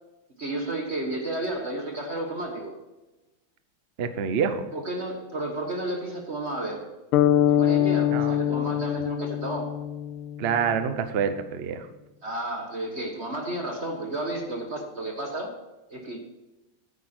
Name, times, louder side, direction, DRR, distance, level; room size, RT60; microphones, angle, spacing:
voice 1, 0.4-2.8 4.7-6.9 7.5-9.8 12.2-15.5 15.9-16.2, right 1 dB, 35° right, 3 dB, 1.3 m, -32 dB
voice 2, 4.0-4.6 8.1-8.7 10.4-11.9, right 7 dB, 70° right, 9 dB, 0.5 m, -27 dB
sound 1, 7.1-11.1, left 11 dB, 85° left, 1.5 m, -24 dB
10.0 x 9.0 x 4.3 m, 1.1 s
omnidirectional pair, 2.3 m